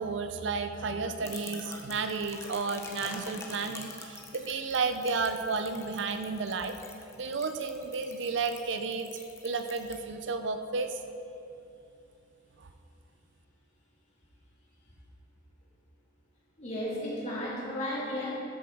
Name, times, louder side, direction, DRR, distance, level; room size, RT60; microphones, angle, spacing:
voice 1, 0.0-6.8 7.2-9.1 9.4-11.0 12.6-12.7, right 4 dB, 65° right, 8 dB, 0.6 m, -32 dB
sound 1, 1.2-10.0, left 3 dB, 15° left, 0.9 m, -47 dB
voice 2, 16.6-18.3, left 1 dB, 40° left, -6 dB, 2.7 m, -34 dB
12.5 x 6.9 x 4.6 m, 2.7 s
head